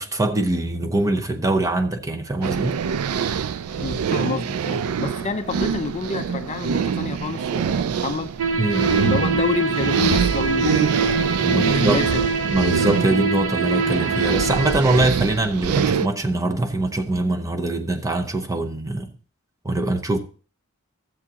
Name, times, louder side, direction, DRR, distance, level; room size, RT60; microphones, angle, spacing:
voice 1, 0.0-2.8 8.6-8.9 11.4-12.0 12.5-19.1 19.6-20.2, right 2 dB, 15° right, 0.7 m, -23 dB
sound 1, 2.4-16.1, right 7 dB, 85° right, 0.4 m, -25 dB
voice 2, 3.7-11.0 11.4-12.2, left 4 dB, 30° left, 0.4 m, -28 dB
sound 2, 8.4-14.8, right 3 dB, 65° right, 0.8 m, -24 dB
13.5 x 7.3 x 2.8 m
head